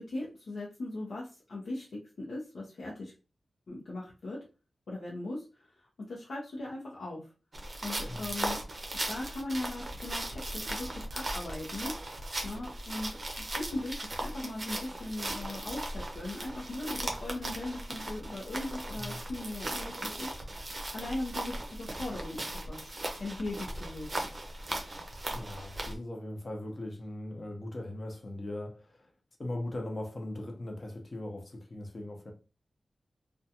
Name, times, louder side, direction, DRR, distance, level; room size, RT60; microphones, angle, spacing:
voice 1, 0.0-3.1 3.7-4.4 4.9-7.3 7.8-8.6 9.1-12.0 12.4-13.2 13.5-20.3 20.9-22.9 23.2-24.1, left 2 dB, 80° left, 0.6 m, -39 dB
sound 1, 7.5-26.0, right 1 dB, 40° right, 0.5 m, -38 dB
voice 2, 25.3-29.0 29.4-32.3, left 1 dB, 40° left, 0.7 m, -39 dB
2.5 x 2.2 x 2.7 m
wide cardioid pair, 110°, 0 cm